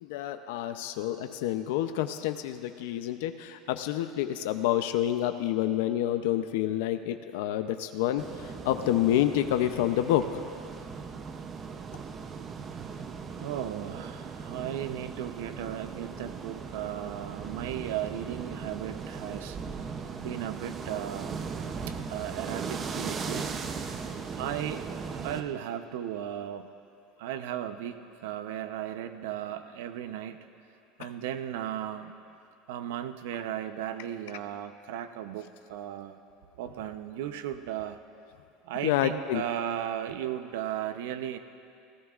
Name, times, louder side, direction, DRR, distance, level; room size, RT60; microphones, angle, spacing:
voice 1, 0.0-10.4 31.0-31.1 38.8-39.4, left 12 dB, 80° left, 9 dB, 0.6 m, -28 dB
sound 1, 8.2-25.4, right 5 dB, 25° right, 0.6 m, -38 dB
voice 2, 13.3-19.6 20.2-21.4 21.9-23.5 24.4-24.9 25.2-26.7 27.2-30.5 31.0-32.1 32.7-36.2 36.6-38.0 38.6-41.4, right 10 dB, 90° right, 9 dB, 0.7 m, -36 dB
30.0 x 16.0 x 2.5 m, 2.5 s
cardioid pair, 170°, 0 cm